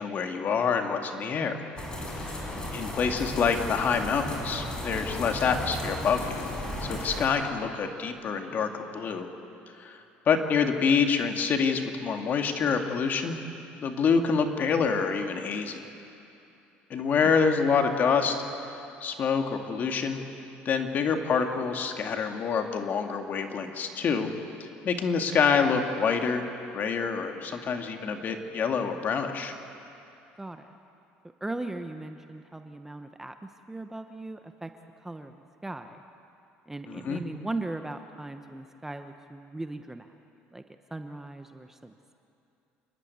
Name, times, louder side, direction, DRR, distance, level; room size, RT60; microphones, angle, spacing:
voice 1, 0.0-1.6 2.2-6.5 6.8-9.3 9.8-13.4 13.8-15.9 16.9-18.7 19.0-20.2 20.7-24.3 24.6-26.4 26.7-29.6 36.9-37.2, left 6 dB, 45° left, 4 dB, 2.1 m, -27 dB
sound 1, 1.8-7.3, left 1 dB, 20° left, 5.0 m, -35 dB
voice 2, 30.4-30.7 31.4-34.7 35.0-35.3 35.6-36.0 36.7-40.1 40.5-40.6 40.9-42.1, right 2 dB, 10° right, 7 dB, 0.9 m, -38 dB
28.5 x 11.5 x 9.3 m, 2.7 s
cardioid pair, 115°, 4 cm